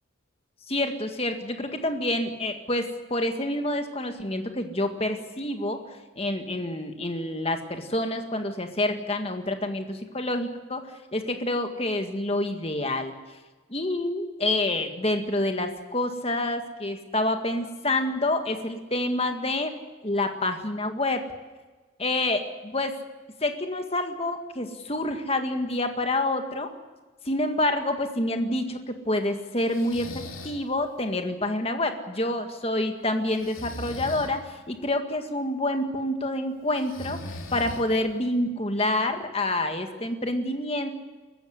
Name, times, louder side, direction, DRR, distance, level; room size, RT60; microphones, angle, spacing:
voice 1, 0.7-5.8 6.2-13.1 13.7-19.7 20.0-21.2 22.0-23.0 23.4-26.7 27.3-30.1 30.4-37.2 37.5-40.9, left 1 dB, 30° left, 6 dB, 1.9 m, -27 dB
Breathing, 29.7-30.6 33.3-34.3 36.7-38.1, left 1 dB, 85° left, 3.2 m, -39 dB
23.0 x 14.5 x 9.7 m, 1.3 s
head